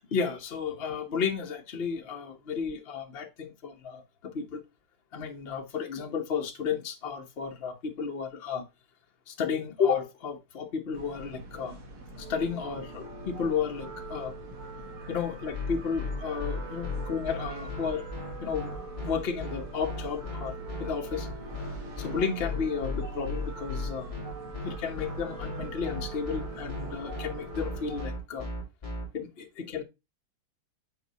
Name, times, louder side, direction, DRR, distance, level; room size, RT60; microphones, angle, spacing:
voice 1, 0.0-4.6 5.1-8.6 9.3-11.8 12.2-14.3 15.1-18.0 18.4-18.7 19.0-20.5 20.8-21.3 22.0-24.1 24.6-28.5 29.1-29.8, left 6 dB, 40° left, 0.9 m, -32 dB
sound 1, 10.9-28.1, right 2 dB, 80° right, 2.5 m, -42 dB
sound 2, 15.5-29.0, left 3 dB, 15° left, 2.9 m, -36 dB
6.6 x 4.4 x 4.1 m
omnidirectional pair, 2.3 m